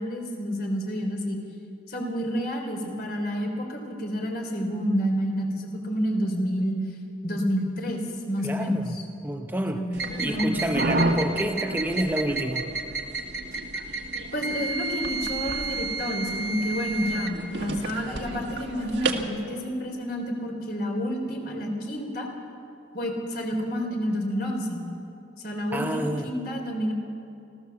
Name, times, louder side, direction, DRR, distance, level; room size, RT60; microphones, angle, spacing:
voice 1, 0.0-1.4 1.9-6.8 7.2-8.0 8.3-9.0 9.7-10.6 14.3-22.3 22.9-24.8 25.4-26.9, equal, 55° left, 2 dB, 3.5 m, -29 dB
voice 2, 8.4-9.0 9.2-9.8 10.2-12.7 25.7-26.3, right 1 dB, 10° right, 5 dB, 0.7 m, -29 dB
sound 1, 9.9-19.3, right 2 dB, 65° right, 1.7 m, -30 dB
26.0 x 15.5 x 7.1 m, 2.7 s
head